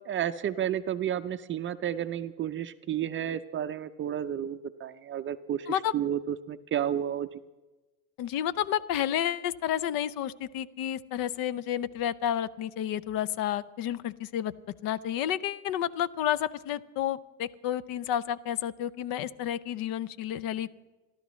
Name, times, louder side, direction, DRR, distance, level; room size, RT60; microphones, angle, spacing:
voice 1, 0.1-7.4, right 10 dB, 30° right, 11 dB, 0.5 m, -32 dB
voice 2, 8.2-14.5 14.8-20.7, left 10 dB, 55° left, 17 dB, 0.7 m, -31 dB
28.5 x 12.0 x 3.1 m, 1.2 s
supercardioid pair, 110°, 42 cm